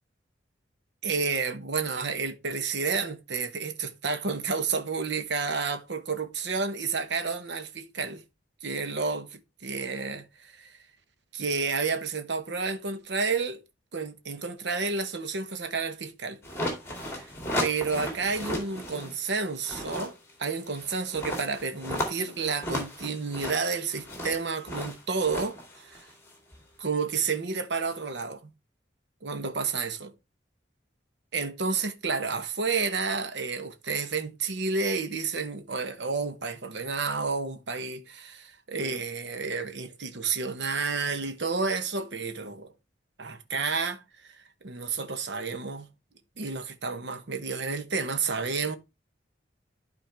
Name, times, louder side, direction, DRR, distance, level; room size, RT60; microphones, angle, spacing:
voice 1, 1.0-8.2 8.6-10.7 11.3-13.6 13.9-16.4 17.1-17.3 17.6-20.1 20.4-26.1 26.8-28.5 29.2-30.1 31.3-42.7 43.2-44.0 44.6-45.9 46.4-48.8, right 4 dB, 70° right, 0.9 m, -30 dB
sound 1, 16.4-19.1 19.5-26.6, left 1 dB, 15° left, 2.2 m, -35 dB
11.5 x 4.4 x 3.3 m
head